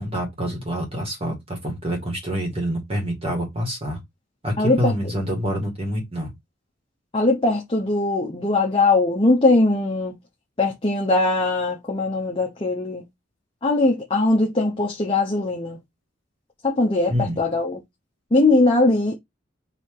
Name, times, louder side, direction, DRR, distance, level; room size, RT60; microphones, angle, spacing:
voice 1, 0.0-4.0 4.4-6.3 17.1-17.4, equal, 30° right, 1.7 m, -26 dB
voice 2, 4.6-5.1 7.1-10.1 10.6-13.0 13.6-15.8 16.6-17.8 18.3-19.1, left 2 dB, 25° left, 0.8 m, -20 dB
4.8 x 2.9 x 3.7 m
head